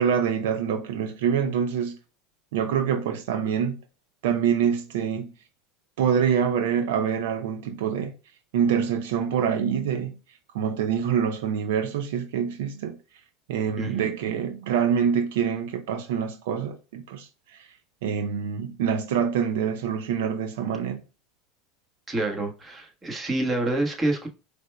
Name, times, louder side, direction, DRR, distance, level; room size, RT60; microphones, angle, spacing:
voice 1, 0.0-2.0 2.5-3.8 4.2-5.3 6.0-8.1 8.5-10.1 10.5-13.0 13.5-17.7 18.0-21.0, right 7 dB, 80° right, 0.6 m, -25 dB
voice 2, 13.8-14.1 22.1-24.3, right 2 dB, 20° right, 1.4 m, -27 dB
4.9 x 3.4 x 2.2 m
supercardioid pair, 105°, 0 cm